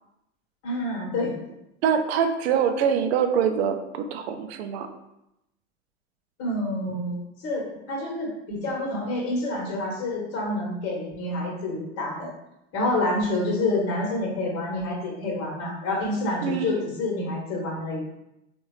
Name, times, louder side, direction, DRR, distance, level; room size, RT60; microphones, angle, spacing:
voice 1, 0.6-1.3 6.4-7.1 7.4-12.3 12.7-18.0, left 2 dB, 40° left, -3 dB, 1.5 m, -28 dB
voice 2, 1.8-4.9 16.4-16.8, right 7 dB, 60° right, 7 dB, 0.5 m, -24 dB
3.8 x 2.5 x 3.2 m, 0.87 s
hypercardioid pair, 85°, 36 cm